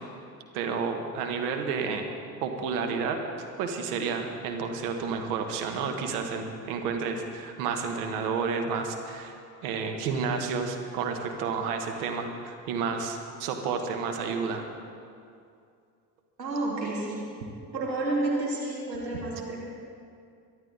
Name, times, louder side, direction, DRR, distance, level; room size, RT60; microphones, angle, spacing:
voice 1, 0.5-2.1 2.4-9.3 9.6-14.6, right 5 dB, 60° right, 5 dB, 1.7 m, -31 dB
voice 2, 16.4-17.3 17.7-19.7, right 2 dB, 85° right, -3 dB, 2.0 m, -30 dB
23.5 x 10.5 x 4.2 m, 2.4 s
figure-of-eight pair, 60°, 50 cm